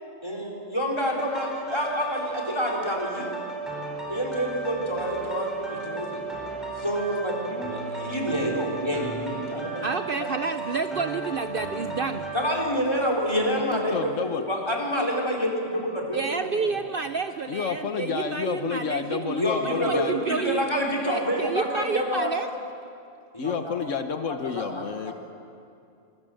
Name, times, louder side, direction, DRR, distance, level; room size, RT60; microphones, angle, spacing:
voice 1, 0.2-3.3 4.1-6.2 6.8-10.3 12.3-16.7 19.4-22.3 23.3-23.8 24.4-25.1, equal, 20° left, 1 dB, 4.1 m, -28 dB
sound 1, 1.1-12.5, right 3 dB, ahead, 4.5 m, -35 dB
voice 2, 9.8-12.2 16.1-20.7 21.0-22.5, right 5 dB, 50° right, 9 dB, 0.8 m, -30 dB
voice 3, 13.7-14.4 17.5-20.2 23.4-25.1, left 6 dB, 75° left, 8 dB, 1.3 m, -30 dB
25.5 x 22.0 x 7.7 m, 2.5 s
omnidirectional pair, 1.3 m